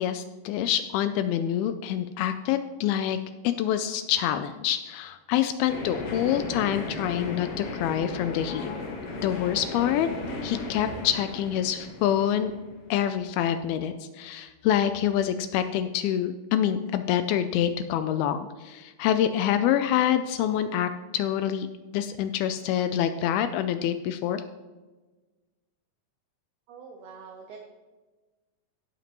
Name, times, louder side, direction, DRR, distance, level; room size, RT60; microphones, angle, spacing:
voice 1, 0.0-3.2 3.4-8.7 9.2-10.1 10.4-12.5 12.9-21.7 21.9-24.4, left 10 dB, 80° left, 10 dB, 2.3 m, -26 dB
sound 1, 5.7-13.4, left 3 dB, 55° left, 1.7 m, -36 dB
voice 2, 26.7-27.6, right 5 dB, 70° right, 2 dB, 1.9 m, -45 dB
16.5 x 8.0 x 3.0 m, 1.3 s
omnidirectional pair, 4.6 m